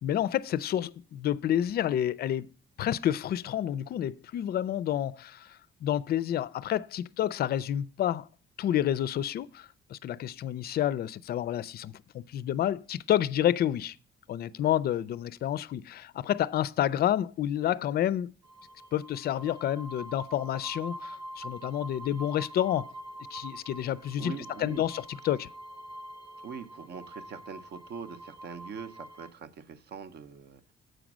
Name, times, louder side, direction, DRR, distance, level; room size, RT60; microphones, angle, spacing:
voice 1, 0.0-2.5 2.8-8.3 8.6-14.0 14.3-18.3 18.9-22.9 23.3-25.5, left 11 dB, 50° left, 0.4 m, -29 dB
sound 1, 18.4-29.3, right 1 dB, 25° right, 0.8 m, -45 dB
voice 2, 24.2-24.9 26.4-30.6, right 6 dB, 50° right, 0.7 m, -42 dB
7.9 x 5.1 x 6.0 m
cardioid pair, 155°, 21 cm